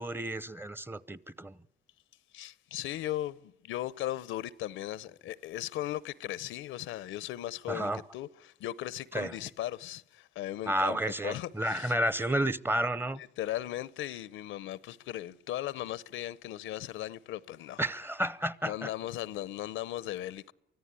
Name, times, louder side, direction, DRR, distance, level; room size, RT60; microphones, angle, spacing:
voice 1, 0.0-1.6 7.7-8.0 9.1-9.3 10.7-13.2 17.8-18.9, right 1 dB, 10° right, 0.7 m, -31 dB
voice 2, 2.3-11.0 11.2-11.9 13.1-17.8 18.6-20.5, left 13 dB, 85° left, 0.7 m, -37 dB
24.0 x 14.5 x 9.7 m
cardioid pair, 90°, 20 cm